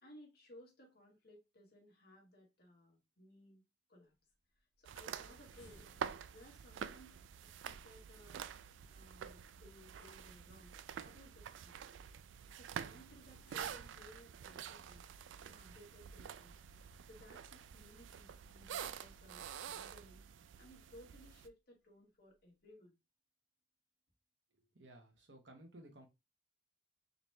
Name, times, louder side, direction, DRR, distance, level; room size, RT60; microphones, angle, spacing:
voice 1, 0.0-3.6 3.9-4.1 4.6-5.9 6.3-8.5 8.9-10.7 11.0-11.8 12.5-15.1 15.4-16.6 17.0-20.2 20.6-23.0, equal, 55° left, 1.4 m, -60 dB
sound 1, 4.1-16.7 17.1-17.2 17.5-17.8 18.7-19.3 19.6-19.7 20.1-20.2 20.8-20.9 21.1-21.5 21.8-22.6, left 1 dB, 75° left, 1.4 m, -67 dB
sound 2, 4.8-21.5, right 8 dB, 90° right, 0.3 m, -48 dB
voice 2, 24.7-26.1, right 1 dB, 70° right, 1.2 m, -57 dB
4.0 x 3.0 x 3.2 m
head